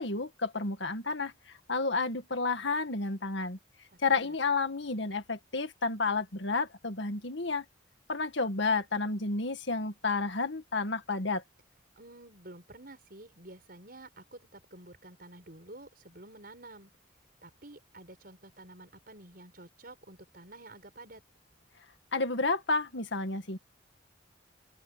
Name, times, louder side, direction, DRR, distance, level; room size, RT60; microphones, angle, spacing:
voice 1, 0.0-1.3 1.7-3.6 4.0-7.6 8.1-11.4 22.1-23.6, left 3 dB, 70° left, 2.0 m, -31 dB
voice 2, 3.9-4.4 12.0-16.9 17.4-21.2, right 2 dB, 50° right, 7.1 m, -50 dB
open air
head